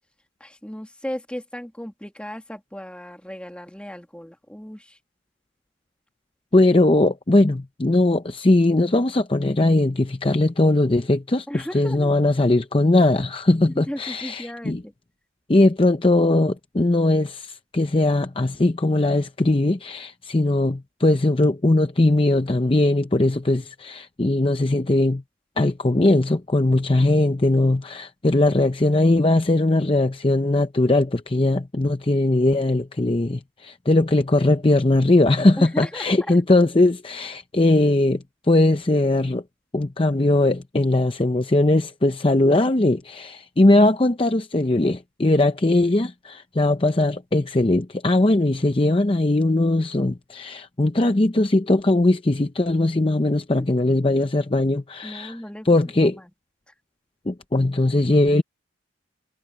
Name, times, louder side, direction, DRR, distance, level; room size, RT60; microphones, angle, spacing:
voice 1, 0.4-5.0 11.5-12.1 13.7-14.9 35.6-36.4 55.0-56.3 56.7-56.8, equal, 5° left, 2.0 m, -36 dB
voice 2, 6.5-14.8 15.5-25.2 25.6-39.4 39.7-55.4 55.6-56.2 57.3-58.4, left 2 dB, 25° left, 0.7 m, -20 dB
head